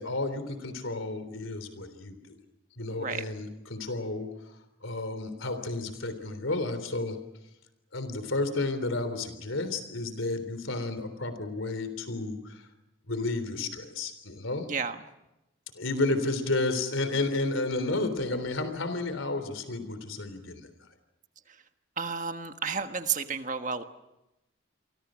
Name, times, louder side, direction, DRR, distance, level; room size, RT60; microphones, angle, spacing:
voice 1, 0.0-2.3 2.8-4.3 4.8-7.2 7.9-12.6 13.1-14.7 15.7-20.6, left 2 dB, 80° left, 10 dB, 3.5 m, -31 dB
voice 2, 22.0-23.8, right 5 dB, 40° right, 7 dB, 1.5 m, -31 dB
29.5 x 24.0 x 6.3 m, 0.93 s
head